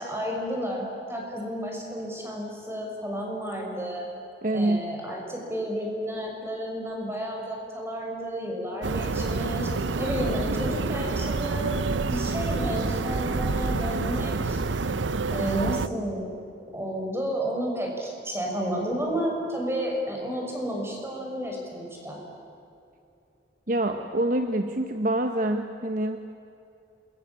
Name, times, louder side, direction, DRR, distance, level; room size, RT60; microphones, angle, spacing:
voice 1, 0.0-4.1 4.5-9.7 10.0-11.8 12.1-14.6 15.3-16.3 16.7-22.2, equal, 15° right, 0 dB, 6.2 m, -31 dB
voice 2, 4.4-4.8 23.7-26.2, right 1 dB, 45° right, 6 dB, 1.2 m, -26 dB
sound 1, 8.8-15.9, right 3 dB, 90° right, 0.7 m, -28 dB
28.0 x 22.5 x 8.8 m, 2.7 s
head